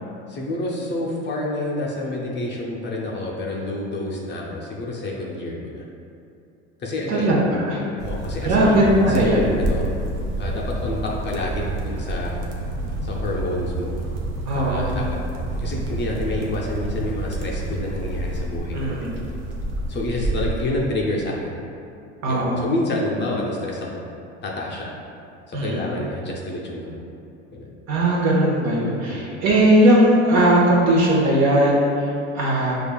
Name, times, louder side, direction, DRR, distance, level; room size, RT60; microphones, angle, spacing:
voice 1, 0.3-5.8 6.8-7.3 7.9-8.7 9.1-9.9 10.4-12.5 13.0-14.0 14.5-15.2 15.6-19.2 19.9-21.5 22.3-24.0 24.4-24.9 25.5-27.0 27.5-27.7 29.1-29.3, left 2 dB, 35° left, -3 dB, 0.5 m, -28 dB
voice 2, 7.1-7.8 8.4-9.5 14.5-15.0 18.7-19.1 22.2-22.6 25.5-25.9 27.9-32.7, right 1 dB, 50° right, -4 dB, 1.0 m, -18 dB
sound 1, 8.0-20.6, right 2 dB, 80° right, 0.6 m, -28 dB
5.0 x 2.4 x 2.2 m, 2.6 s
supercardioid pair, 100°, 34 cm